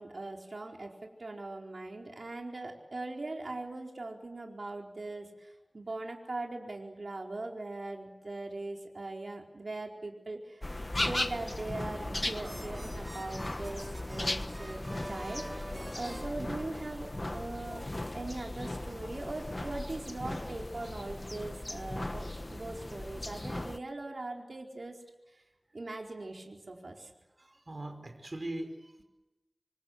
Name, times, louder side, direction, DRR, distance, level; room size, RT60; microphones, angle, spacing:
voice 1, 0.0-10.6 11.0-17.9 18.1-25.0 25.3-25.4 25.7-27.1, right 2 dB, 75° right, 1 dB, 4.5 m, -41 dB
sound 1, 10.6-23.8, left 1 dB, 35° left, 1.3 m, -37 dB
sound 2, 11.9-17.2, right 1 dB, 25° right, 3.4 m, -47 dB
voice 2, 27.4-29.0, right 1 dB, 50° right, 6 dB, 5.2 m, -41 dB
27.5 x 26.0 x 8.3 m, 1.1 s
wide cardioid pair, 55°, 0 cm